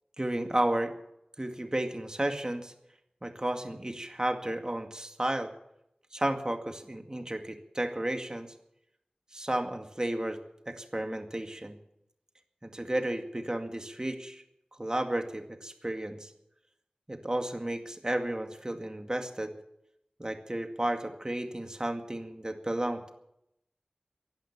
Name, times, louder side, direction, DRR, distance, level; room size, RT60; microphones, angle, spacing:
voice 1, 0.2-0.9 1.4-2.7 3.2-5.5 6.1-8.5 9.3-10.4 10.7-11.8 12.6-14.4 14.8-16.3 17.1-19.5 20.2-23.1, right 1 dB, 30° right, 5 dB, 2.1 m, -32 dB
17.0 x 11.5 x 7.4 m, 0.81 s
wide cardioid pair, 55°, 3 cm